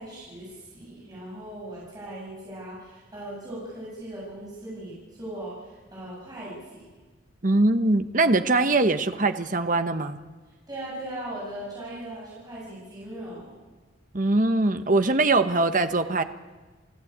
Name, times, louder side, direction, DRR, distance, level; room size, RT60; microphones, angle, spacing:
voice 1, 0.0-6.8 10.7-13.5, right 1 dB, 20° right, -6 dB, 7.5 m, -39 dB
voice 2, 7.4-10.2 14.1-16.2, right 2 dB, 40° right, 9 dB, 1.1 m, -22 dB
29.0 x 15.0 x 8.8 m, 1.4 s
head